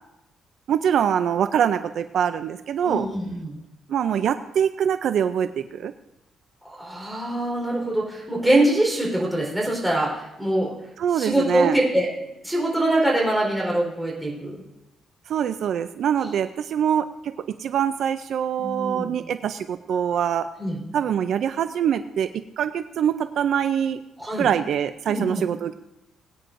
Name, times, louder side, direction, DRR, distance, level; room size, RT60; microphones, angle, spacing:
voice 1, 0.7-3.1 3.9-5.9 11.0-11.8 15.3-17.3 17.6-20.5 20.9-22.3 22.6-24.0 24.4-25.8, right 8 dB, 65° right, 10 dB, 0.4 m, -24 dB
voice 2, 2.8-3.6 6.6-10.7 11.1-12.1 12.4-14.6 18.6-19.2 20.6-20.8 24.2-24.5 25.1-25.4, right 1 dB, 5° right, -3 dB, 4.0 m, -24 dB
21.5 x 9.2 x 2.6 m, 0.91 s
cardioid pair, 135°, 0 cm